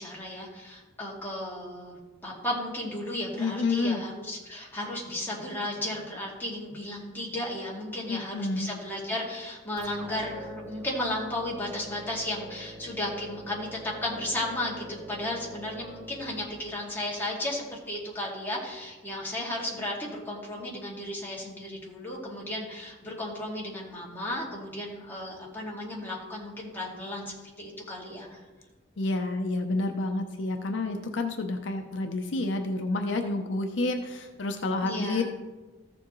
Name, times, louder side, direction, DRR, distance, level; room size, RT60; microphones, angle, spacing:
voice 1, 0.0-28.4 34.8-35.2, left 1 dB, 10° left, -5 dB, 2.1 m, -34 dB
voice 2, 3.4-4.0 8.1-8.7 29.0-35.2, left 2 dB, 65° left, 5 dB, 0.6 m, -29 dB
sound 1, 9.8-17.3, right 1 dB, 20° right, 1.2 m, -46 dB
14.5 x 7.0 x 3.0 m, 1.2 s
head